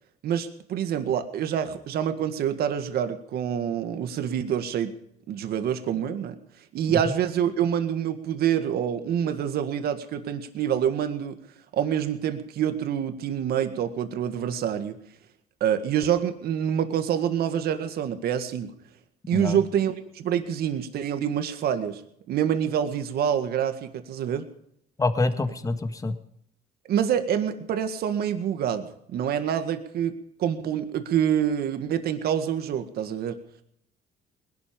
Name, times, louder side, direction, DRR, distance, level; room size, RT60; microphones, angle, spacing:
voice 1, 0.2-4.9 5.3-6.4 6.7-11.4 11.7-15.0 15.6-18.7 19.3-22.0 22.3-24.5 26.9-30.1 30.4-33.4, right 9 dB, 65° right, 8 dB, 1.9 m, -26 dB
voice 2, 25.0-26.2, left 3 dB, 20° left, 9 dB, 1.8 m, -26 dB
20.5 x 12.0 x 5.4 m, 0.73 s
cardioid pair, 110°, 17 cm